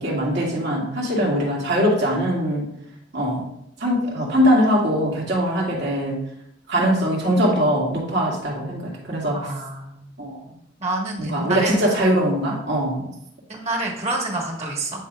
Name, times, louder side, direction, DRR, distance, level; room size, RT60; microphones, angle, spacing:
voice 1, 0.0-2.7 3.1-3.5 3.8-6.2 6.7-9.5 10.2-10.4 11.2-13.1, equal, 65° right, -3 dB, 2.2 m, -21 dB
voice 2, 9.3-10.1 10.8-11.8 13.5-15.1, right 2 dB, 35° right, -1 dB, 1.6 m, -28 dB
10.0 x 5.3 x 2.4 m, 0.75 s
head